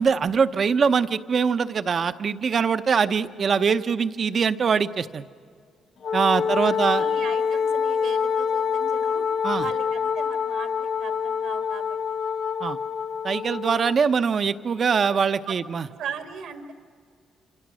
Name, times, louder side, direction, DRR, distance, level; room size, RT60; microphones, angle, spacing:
voice 1, 0.0-5.2 6.1-7.1 9.4-9.6 12.6-12.8 13.2-15.9, right 6 dB, 45° right, 11 dB, 0.8 m, -23 dB
Wind instrument woodwind instrument, 6.0-14.0, left 6 dB, 65° left, 0.9 m, -26 dB
voice 2, 6.9-9.3 9.5-12.0 15.5-15.6 16.0-16.7, right 7 dB, 85° right, 5 dB, 2.2 m, -38 dB
27.5 x 26.5 x 6.3 m, 2.1 s
cardioid pair, 90°, 0 cm